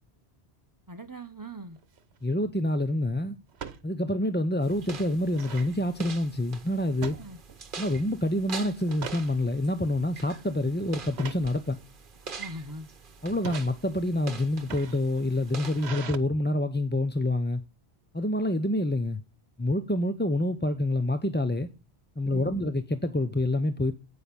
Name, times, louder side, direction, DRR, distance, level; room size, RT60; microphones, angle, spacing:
voice 1, 0.9-1.8 7.1-7.4 12.4-12.9 22.3-22.7, right 1 dB, 20° right, 0.9 m, -41 dB
sound 1, 1.8-2.1 3.5-3.8 4.3-4.4 4.7-5.7 7.0-7.8 8.1-8.4 8.8-9.3 9.9-10.2 11.1-11.5 12.3-12.7 13.3-13.7 14.5-16.2, right 7 dB, 75° right, 1.2 m, -41 dB
voice 2, 2.2-3.4 3.8-7.2 7.8-11.8 13.2-17.6 18.1-19.2 19.6-21.7 22.2-23.9, left 1 dB, 10° left, 0.6 m, -27 dB
sound 2, 4.6-15.9, right 5 dB, 55° right, 1.3 m, -44 dB
9.1 x 8.6 x 5.3 m
omnidirectional pair, 1.1 m